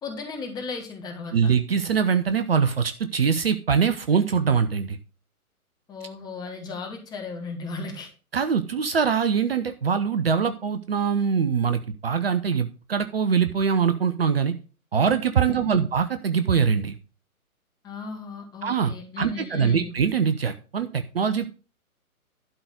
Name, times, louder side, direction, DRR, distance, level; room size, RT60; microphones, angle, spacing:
voice 1, 0.0-1.3 5.9-8.1 15.5-15.9 17.8-19.9, left 4 dB, 10° left, 3 dB, 1.4 m, -35 dB
voice 2, 1.3-5.0 8.3-14.5 14.9-17.0 18.6-21.5, right 6 dB, 40° right, 10 dB, 0.8 m, -23 dB
12.0 x 4.0 x 7.9 m, 0.36 s
figure-of-eight pair, 130°, 44 cm